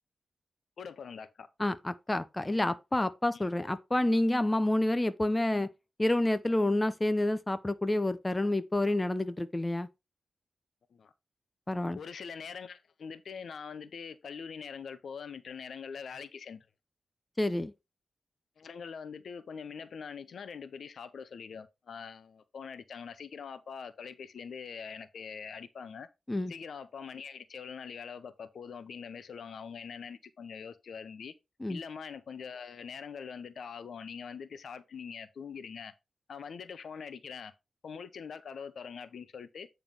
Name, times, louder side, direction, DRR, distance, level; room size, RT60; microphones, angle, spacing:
voice 1, 0.8-1.5 3.3-3.4 10.9-11.1 11.9-16.7 18.6-26.1 26.5-31.3 31.7-35.9 36.3-37.5 37.8-39.7, left 6 dB, 80° left, 0.9 m, -43 dB
voice 2, 1.6-5.7 6.0-9.9 11.7-12.0 17.4-17.7 26.3-26.5 31.6-31.8, left 1 dB, 15° left, 0.6 m, -28 dB
9.1 x 3.4 x 5.3 m
wide cardioid pair, 110°, 0 cm